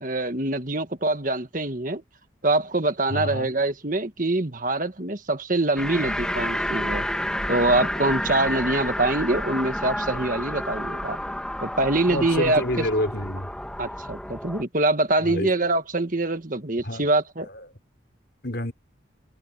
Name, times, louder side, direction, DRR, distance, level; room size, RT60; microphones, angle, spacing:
voice 1, 0.0-2.0 2.4-7.1 7.5-11.2 11.6-12.6 13.8-17.5, right 2 dB, 45° right, 1.7 m, -24 dB
voice 2, 3.1-3.5 12.1-13.5 15.2-15.5 16.8-17.1 17.4-17.7 18.4-18.7, left 1 dB, 55° left, 5.6 m, -28 dB
sound 1, 5.8-14.6, left 1 dB, 5° left, 2.0 m, -30 dB
open air
head